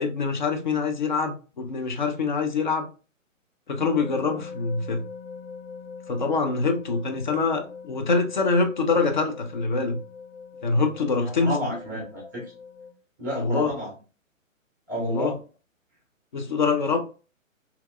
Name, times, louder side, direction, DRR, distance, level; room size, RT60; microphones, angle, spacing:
voice 1, 0.0-2.9 3.7-5.1 6.1-10.0 10.6-11.8 13.3-13.7 14.9-15.3 16.3-17.0, left 4 dB, 40° left, 0.4 m, -25 dB
sound 1, 3.8-12.9, left 5 dB, 55° left, 0.9 m, -42 dB
voice 2, 11.2-12.4 13.2-13.9 14.9-15.3, equal, 15° right, 0.5 m, -31 dB
2.8 x 2.0 x 2.2 m
figure-of-eight pair, 130°, 40 cm